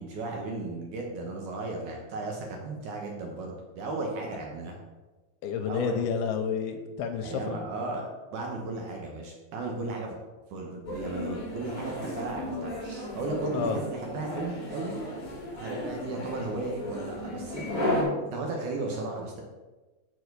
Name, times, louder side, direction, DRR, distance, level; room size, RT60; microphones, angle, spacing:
voice 1, 0.0-4.8 5.7-6.0 7.2-10.2 10.5-15.0 15.6-19.4, right 2 dB, 70° right, 0 dB, 1.9 m, -35 dB
voice 2, 5.4-7.6 13.5-13.8, left 6 dB, 85° left, 5 dB, 2.5 m, -30 dB
sound 1, 10.8-18.0, left 1 dB, 40° left, 1.2 m, -34 dB
7.0 x 4.2 x 6.5 m, 1.2 s
omnidirectional pair, 4.5 m